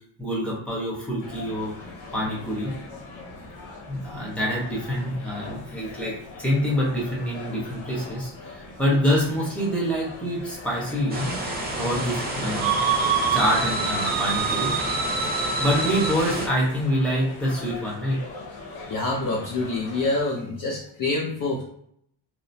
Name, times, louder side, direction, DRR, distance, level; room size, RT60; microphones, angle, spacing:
voice 1, 0.2-1.7 2.1-2.7 3.9-11.4 11.8-12.8 13.3-14.7 15.6-18.2, equal, ahead, -5 dB, 1.1 m, -26 dB
sound 1, 1.2-20.2, left 3 dB, 80° left, 0.9 m, -41 dB
sound 2, 11.1-16.5, right 1 dB, 20° right, 0.6 m, -30 dB
sound 3, 12.6-16.3, right 5 dB, 70° right, 0.6 m, -26 dB
voice 2, 18.9-21.6, left 2 dB, 45° left, -3 dB, 0.6 m, -26 dB
2.9 x 2.0 x 2.6 m, 0.67 s
cardioid pair, 100°, 46 cm